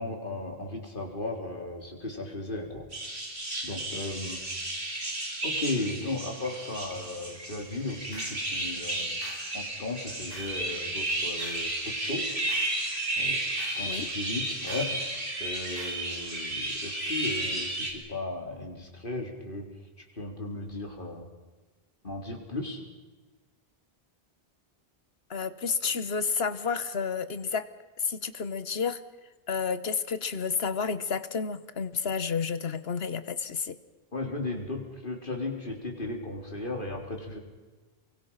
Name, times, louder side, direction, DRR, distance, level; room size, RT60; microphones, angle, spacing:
voice 1, 0.0-2.9 3.6-4.4 5.4-9.2 9.5-12.3 13.2-13.4 13.7-15.0 15.4-19.7 20.1-21.3 22.0-22.8 34.1-37.4, left 2 dB, 55° left, 1 dB, 4.4 m, -36 dB
Tree Full of Bats, 2.9-17.9, right 2 dB, 85° right, 4.3 m, -33 dB
sound 1, 8.1-8.4 9.2-9.5 10.3-10.6 11.4-11.7 12.5-12.8 13.6-13.9 14.7-15.0 15.8-16.1, equal, 20° left, 4.0 m, -46 dB
voice 2, 25.3-27.7 28.0-29.0 29.5-33.8, left 6 dB, 75° left, 13 dB, 1.5 m, -30 dB
29.0 x 23.5 x 5.8 m, 1.2 s
omnidirectional pair, 1.0 m